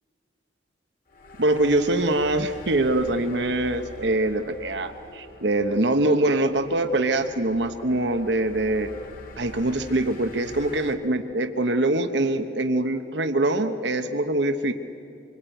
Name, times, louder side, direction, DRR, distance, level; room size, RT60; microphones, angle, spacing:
sound 1, 1.1-10.9, left 2 dB, 50° left, 2.0 m, -44 dB
voice 1, 1.4-8.9 9.4-14.7, right 2 dB, 65° right, 7 dB, 1.0 m, -23 dB
25.5 x 21.5 x 9.2 m, 2.5 s
head